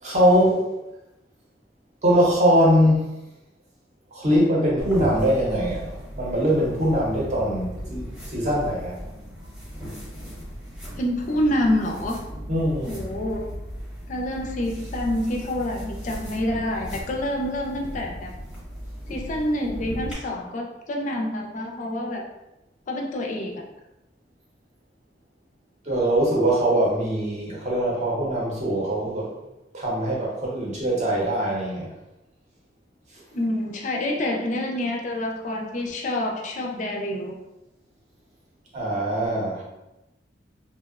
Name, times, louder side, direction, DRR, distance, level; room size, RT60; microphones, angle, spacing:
voice 1, 0.0-0.7 2.0-3.1 4.1-9.0 12.5-12.9 25.8-29.3 29.7-31.9 38.7-39.6, equal, 40° right, -4 dB, 0.7 m, -22 dB
sound 1, 4.8-20.1, equal, 5° right, 0.7 m, -37 dB
voice 2, 11.0-12.2 12.9-13.5 14.1-18.3 19.1-22.3 22.9-23.6 33.3-37.4, left 1 dB, 40° left, 1 dB, 0.3 m, -27 dB
2.7 x 2.0 x 2.3 m, 0.95 s
head